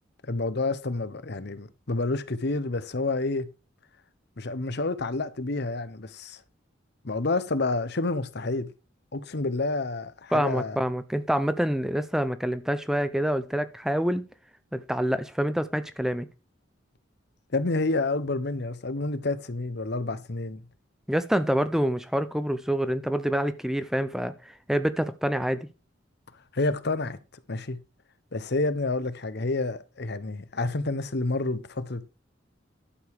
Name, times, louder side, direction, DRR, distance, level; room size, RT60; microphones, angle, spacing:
voice 1, 0.3-3.5 4.4-6.4 7.0-8.7 9.1-10.8 17.5-20.6 26.5-27.2 27.5-27.8 28.3-32.1, left 2 dB, 55° left, 0.9 m, -29 dB
voice 2, 10.3-14.2 14.7-16.3 21.1-25.7, equal, ahead, 0.6 m, -27 dB
11.5 x 6.9 x 4.8 m
head